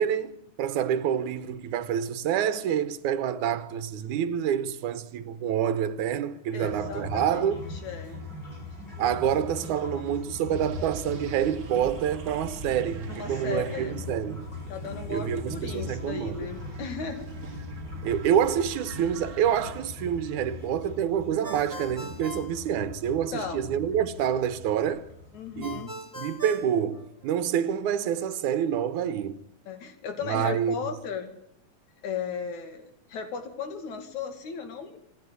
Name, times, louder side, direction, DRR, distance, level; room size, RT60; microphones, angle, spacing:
voice 1, 0.0-7.6 9.0-14.5 15.1-16.5 18.0-25.1 25.6-25.8 26.2-29.4 30.2-30.8, right 9 dB, 85° right, 2.4 m, -27 dB
voice 2, 6.5-8.2 9.0-9.1 13.1-14.0 14.7-17.4 23.3-23.7 25.3-25.9 29.7-31.3 32.0-35.0, left 6 dB, 75° left, 3.8 m, -36 dB
sound 1, 6.6-25.8, left 3 dB, 35° left, 6.9 m, -40 dB
sound 2, 10.5-19.7, right 6 dB, 60° right, 0.9 m, -43 dB
Ringtone, 21.4-23.4 25.6-27.6, equal, 5° right, 2.3 m, -41 dB
26.5 x 10.5 x 9.5 m
omnidirectional pair, 3.4 m